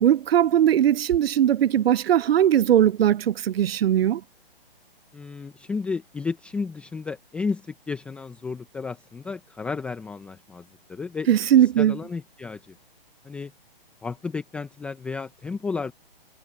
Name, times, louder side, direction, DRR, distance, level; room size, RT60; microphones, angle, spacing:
voice 1, 0.0-4.2 11.3-12.0, right 10 dB, 80° right, 0.5 m, -19 dB
voice 2, 5.1-11.3 11.6-12.7 13.2-13.5 14.0-15.9, left 4 dB, 5° left, 0.7 m, -32 dB
hypercardioid pair, 150°, 30 cm